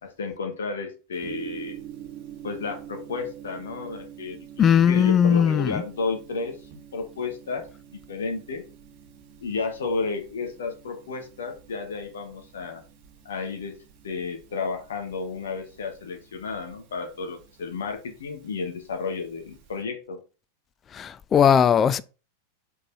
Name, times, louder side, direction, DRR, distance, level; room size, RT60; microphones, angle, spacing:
voice 1, 0.0-1.8 2.4-7.6 7.9-8.6 9.4-12.8 13.2-13.8 14.0-20.2, left 4 dB, 65° left, 1.3 m, -32 dB
Gong, 1.2-19.8, right 10 dB, 45° right, 2.8 m, -46 dB
voice 2, 4.6-5.8 20.9-22.0, left 8 dB, 25° left, 0.4 m, -19 dB
5.3 x 4.2 x 5.5 m
figure-of-eight pair, 90°, 0 cm